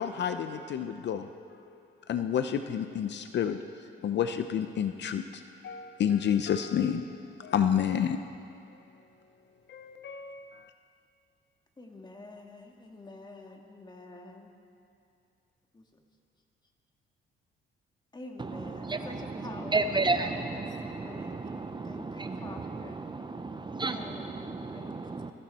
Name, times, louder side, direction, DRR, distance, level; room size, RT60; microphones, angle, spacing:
voice 1, 0.0-1.8 2.1-3.6 4.0-7.1 7.4-8.2 9.7-10.5, left 8 dB, 60° left, 8 dB, 0.7 m, -30 dB
voice 2, 11.8-14.5 15.7-15.9 18.1-21.5 21.8-23.0 23.9-25.3, left 2 dB, 20° left, 2 dB, 2.1 m, -47 dB
voice 3, 18.4-25.3, right 3 dB, 25° right, 8 dB, 0.7 m, -33 dB
22.0 x 15.0 x 4.4 m, 2.5 s
cardioid pair, 90°, 20 cm